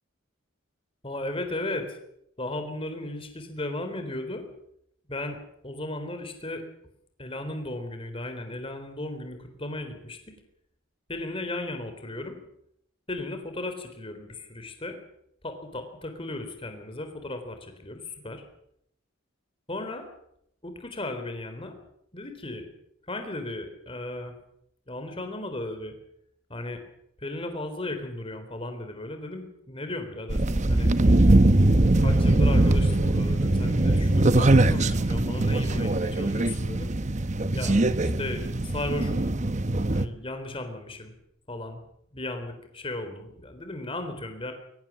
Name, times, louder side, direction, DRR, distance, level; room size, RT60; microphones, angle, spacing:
voice 1, 1.0-2.0 2.4-4.4 5.1-5.4 5.6-6.6 7.2-10.2 11.1-12.4 13.1-15.0 15.4-18.4 19.7-20.0 20.6-21.7 22.1-22.7 23.1-24.3 24.9-25.9 26.5-26.8 27.2-30.9 32.0-36.9 37.5-39.3 39.9-41.1 41.5-41.8 42.1-44.5, left 2 dB, 25° left, 7 dB, 3.9 m, -35 dB
sound 1, 30.3-40.1, right 2 dB, 35° right, 0.9 m, -21 dB
23.0 x 20.0 x 7.4 m, 0.74 s
head